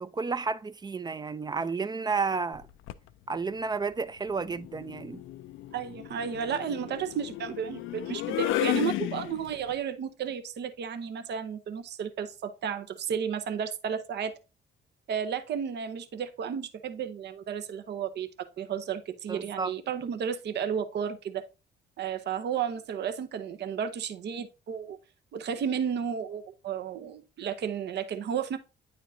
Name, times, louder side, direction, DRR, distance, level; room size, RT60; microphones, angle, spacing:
voice 1, 0.0-2.7 3.3-5.2 19.3-19.7, right 4 dB, 20° right, 0.4 m, -31 dB
sound 1, 2.5-3.1 4.5-9.7, left 14 dB, 80° left, 0.4 m, -33 dB
voice 2, 5.7-14.3 15.1-21.4 22.0-25.0 25.3-28.6, right 7 dB, 60° right, 0.7 m, -33 dB
9.2 x 4.4 x 2.6 m
cardioid pair, 90°, 20 cm